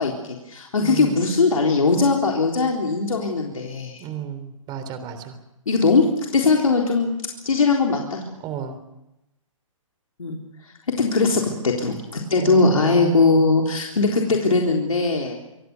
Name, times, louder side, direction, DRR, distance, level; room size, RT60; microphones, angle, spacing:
voice 1, 0.0-4.0 5.7-6.1 6.3-7.1 7.4-8.2 10.2-10.4 11.0-15.4, left 3 dB, 85° left, 0 dB, 3.7 m, -20 dB
voice 2, 0.8-1.2 4.0-5.4 8.4-8.8 12.4-13.4, right 8 dB, 25° right, 10 dB, 3.5 m, -33 dB
26.5 x 18.5 x 7.0 m, 0.93 s
hypercardioid pair, 135°, 17 cm